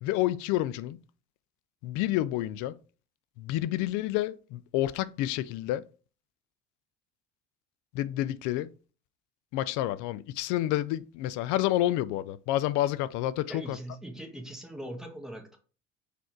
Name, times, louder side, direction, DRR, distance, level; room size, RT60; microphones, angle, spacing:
voice 1, 0.0-1.0 1.8-2.8 3.4-5.8 7.9-8.7 9.5-13.8, left 14 dB, 55° left, 0.5 m, -29 dB
voice 2, 13.5-15.6, right 1 dB, ahead, 1.3 m, -41 dB
4.2 x 2.7 x 4.3 m
hypercardioid pair, 65°, 37 cm